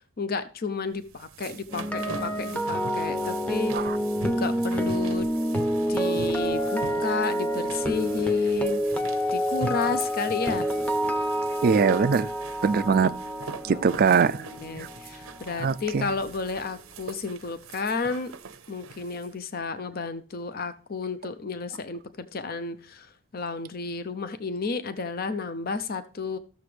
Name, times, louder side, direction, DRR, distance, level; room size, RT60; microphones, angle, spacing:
voice 1, 0.2-3.7 4.2-5.3 5.9-8.9 9.3-10.7 13.6-13.8 14.1-18.3 18.7-26.4, left 4 dB, 45° left, 0.6 m, -32 dB
sound 1, 0.9-19.3, right 4 dB, 85° right, 0.8 m, -41 dB
sound 2, 1.7-15.8 16.0-16.3, equal, 5° left, 0.7 m, -28 dB
voice 2, 11.6-12.3 12.6-13.1 13.6-14.4 15.6-16.1, right 5 dB, 45° right, 0.3 m, -22 dB
14.5 x 6.9 x 3.3 m
head